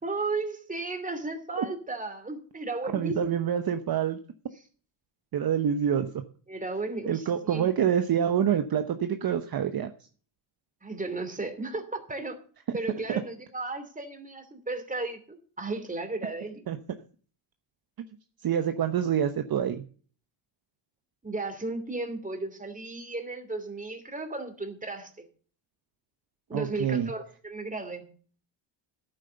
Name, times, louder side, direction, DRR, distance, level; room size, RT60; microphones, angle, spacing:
voice 1, 0.0-3.3 6.5-7.7 10.8-12.4 12.7-16.6 21.2-25.2 26.5-28.1, right 3 dB, 15° right, 7 dB, 2.8 m, -34 dB
voice 2, 2.9-4.2 5.3-6.2 7.1-9.9 12.7-12.8 16.7-16.8 18.4-19.9 26.5-27.1, right 9 dB, 45° right, 8 dB, 1.0 m, -26 dB
11.0 x 9.1 x 6.8 m, 0.42 s
cardioid pair, 90°, 49 cm